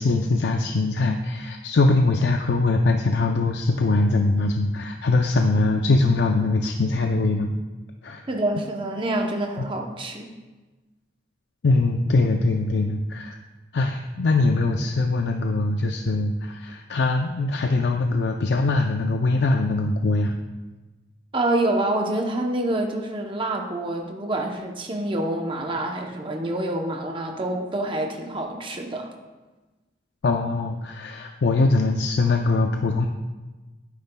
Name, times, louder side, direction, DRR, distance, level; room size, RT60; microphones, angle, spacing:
voice 1, 0.0-7.5 8.0-8.3 11.6-13.4 13.7-20.3 30.2-33.1, left 3 dB, 65° left, 4 dB, 0.5 m, -22 dB
voice 2, 8.3-10.3 21.3-29.1, right 1 dB, 25° right, 2 dB, 0.7 m, -27 dB
10.5 x 9.6 x 2.2 m, 1.2 s
head